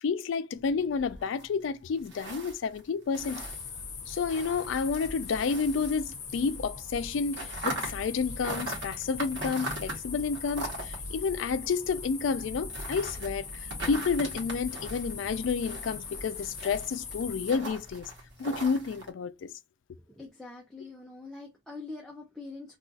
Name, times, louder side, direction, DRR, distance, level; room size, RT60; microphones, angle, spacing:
voice 1, 0.0-3.4 4.1-13.5 13.9-18.1 18.4-19.5, left 5 dB, 90° left, 0.4 m, -30 dB
sound 1, 0.5-6.6 6.8-19.1, right 1 dB, 70° right, 1.0 m, -41 dB
sound 2, 3.2-17.5, left 4 dB, 40° left, 0.8 m, -40 dB
voice 2, 20.2-22.8, left 3 dB, ahead, 0.4 m, -44 dB
2.4 x 2.3 x 3.7 m
head